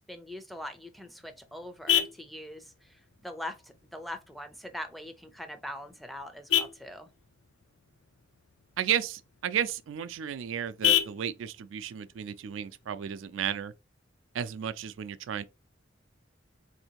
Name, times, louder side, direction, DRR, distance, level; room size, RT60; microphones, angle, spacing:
voice 1, 0.1-7.1, left 1 dB, ahead, 0.4 m, -42 dB
Vehicle horn car horn honking, 0.6-13.6, left 10 dB, 80° left, 0.5 m, -35 dB
voice 2, 8.8-13.7 14.3-15.4, right 9 dB, 90° right, 0.3 m, -33 dB
4.2 x 2.7 x 2.8 m
head